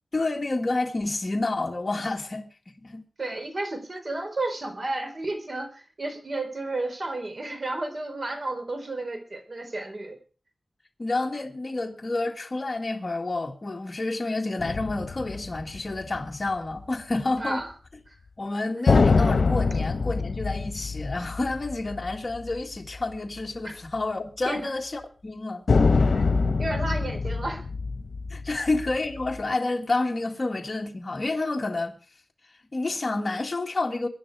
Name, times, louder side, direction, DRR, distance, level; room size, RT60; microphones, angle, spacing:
voice 1, 0.1-3.1 11.0-17.6 18.4-25.6 28.3-31.9 32.7-34.1, left 2 dB, 40° left, 1.9 m, -29 dB
voice 2, 3.2-10.2 17.4-17.7 18.1-18.2 23.6-23.7 24.5-24.7 26.1-26.2 26.6-27.6 28.5-28.7, right 2 dB, 50° right, 4.1 m, -32 dB
sound 1, 14.6-16.5 18.9-22.6 22.9-23.0 25.7-29.4, left 4 dB, 80° left, 1.1 m, -24 dB
23.0 x 10.5 x 4.7 m
wide cardioid pair, 100°, 0 cm